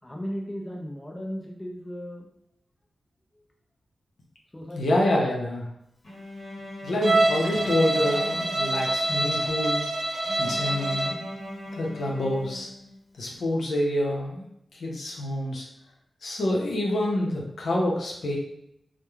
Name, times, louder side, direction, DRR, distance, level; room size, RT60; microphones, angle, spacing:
voice 1, 0.0-2.3 3.3-3.4 4.5-5.0, equal, 20° left, -1 dB, 0.5 m, -36 dB
voice 2, 4.7-5.7 6.8-9.8 10.4-11.2 11.7-12.7 13.2-14.5 14.7-15.7 16.2-18.4, left 1 dB, 75° left, -2 dB, 0.6 m, -27 dB
Bowed string instrument, 6.0-9.3 10.2-13.2, left 1 dB, 55° left, 0.9 m, -41 dB
Bowed string instrument 2, 7.0-11.2, right 2 dB, 60° right, 0.5 m, -26 dB
3.0 x 2.1 x 2.3 m, 0.74 s
wide cardioid pair, 85°, 0 cm